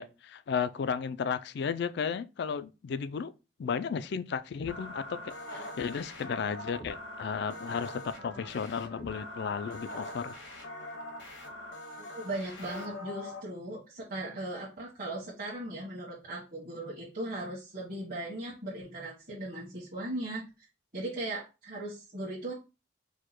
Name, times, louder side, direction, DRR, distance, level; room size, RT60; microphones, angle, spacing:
voice 1, 0.0-3.3 3.6-10.3, left 6 dB, 60° left, 0.4 m, -34 dB
sound 1, 4.6-13.4, left 1 dB, 85° left, 1.0 m, -43 dB
voice 2, 12.1-20.5 20.9-22.5, right 1 dB, 45° right, 1.3 m, -38 dB
4.7 x 2.2 x 4.3 m
head